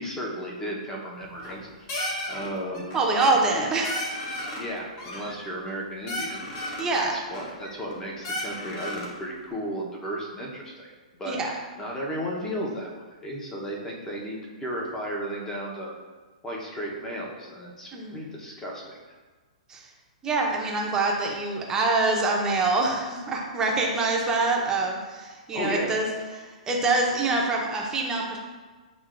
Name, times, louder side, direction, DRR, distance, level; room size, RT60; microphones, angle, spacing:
voice 1, 0.0-1.9 2.3-3.6 4.5-6.5 7.1-10.9 11.2-11.3 11.8-15.9 16.4-19.0 25.5-25.9, equal, 15° left, -2 dB, 0.9 m, -34 dB
sound 1, 1.2-1.6 1.9-2.5 2.7-3.1 3.4-3.5 3.8-4.7 5.0-5.8 6.1-6.9 7.3-7.9 8.2-9.1, left 1 dB, 40° left, 1.1 m, -34 dB
voice 2, 2.9-4.2 6.8-7.1 11.2-11.5 17.9-18.2 19.7-19.9 20.2-26.1 26.4-28.4, right 3 dB, 15° right, -1 dB, 0.7 m, -25 dB
7.1 x 2.8 x 2.5 m, 1.4 s
hypercardioid pair, 135°, 4 cm